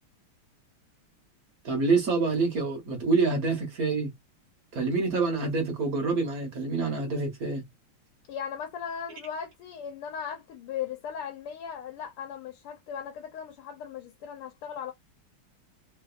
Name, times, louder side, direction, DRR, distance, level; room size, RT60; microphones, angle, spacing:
voice 1, 1.6-4.1 4.7-7.6, right 4 dB, 50° right, 1.3 m, -26 dB
voice 2, 8.3-14.9, left 8 dB, 85° left, 1.7 m, -37 dB
3.6 x 2.6 x 2.4 m
omnidirectional pair, 2.4 m